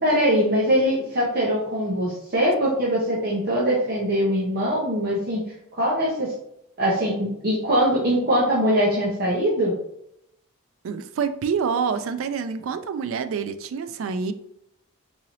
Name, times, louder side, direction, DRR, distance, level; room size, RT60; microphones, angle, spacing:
voice 1, 0.0-5.4 5.7-6.3 6.8-9.7, equal, 45° right, -7 dB, 0.9 m, -22 dB
voice 2, 10.8-14.3, right 6 dB, 65° right, 10 dB, 0.3 m, -27 dB
3.8 x 2.7 x 3.1 m, 0.76 s
head